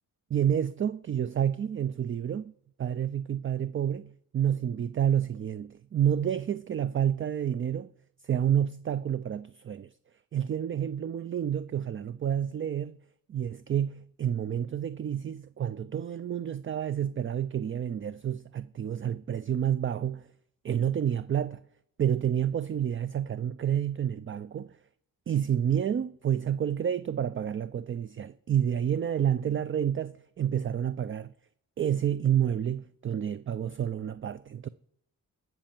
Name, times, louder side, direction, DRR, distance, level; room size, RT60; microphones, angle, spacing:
voice 1, 0.3-2.5 2.8-7.9 8.2-9.9 10.3-13.0 13.3-20.3 20.6-21.6 22.0-24.8 25.3-31.3 31.8-34.7, right 9 dB, 35° right, 0.4 m, -29 dB
12.5 x 4.5 x 7.4 m
supercardioid pair, 45°, 38 cm